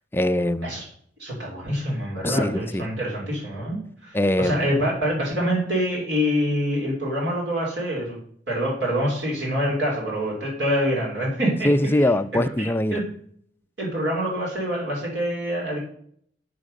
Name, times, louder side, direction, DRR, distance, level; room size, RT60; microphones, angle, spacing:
voice 1, 0.1-0.8 2.2-2.9 4.1-4.7 11.6-13.0, left 1 dB, 15° left, 10 dB, 0.4 m, -22 dB
voice 2, 1.2-8.2 8.5-11.7 11.9-12.1 12.6-13.1 13.8-15.8, equal, 80° right, -3 dB, 3.5 m, -26 dB
8.4 x 6.0 x 6.5 m, 0.63 s
head